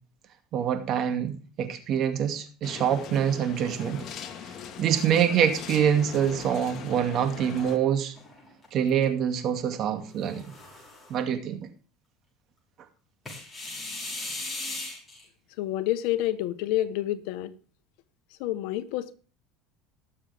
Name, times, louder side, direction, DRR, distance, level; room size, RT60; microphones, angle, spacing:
voice 1, 0.5-4.0 4.8-8.1 8.7-10.4 11.1-11.7, right 9 dB, 45° right, 2.4 m, -25 dB
sound 1, 2.6-7.8, left 8 dB, 45° left, 1.9 m, -40 dB
sound 2, 8.2-9.0 10.1-11.2 13.3-15.2, left 2 dB, 15° left, 6.0 m, -38 dB
voice 2, 15.6-17.5 18.4-19.2, left 14 dB, 70° left, 1.1 m, -28 dB
19.5 x 7.3 x 3.5 m
supercardioid pair, 125°, 0 cm